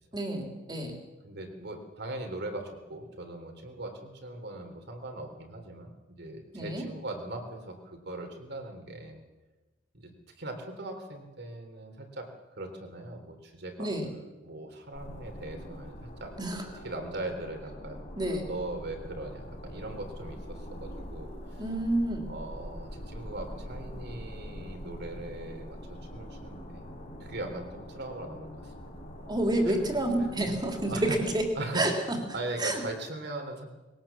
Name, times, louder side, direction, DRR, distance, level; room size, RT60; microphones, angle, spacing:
voice 1, 0.1-1.0 6.5-6.8 13.8-14.1 16.4-16.6 18.2-18.5 21.6-22.2 29.3-31.5 31.7-32.2 32.6-32.8, right 1 dB, 20° right, 3 dB, 3.4 m, -29 dB
voice 2, 1.2-5.9 6.2-9.2 9.9-10.1 10.4-13.9 14.4-16.3 16.8-21.6 22.3-26.9 27.2-28.9 29.6-29.8 30.2-30.3 30.9-31.2 31.5-31.9 32.3-33.6, right 2 dB, 60° right, 5 dB, 3.6 m, -40 dB
sound 1, 14.9-31.5, equal, 40° left, 4.4 m, -43 dB
21.5 x 18.0 x 7.3 m, 1.2 s
head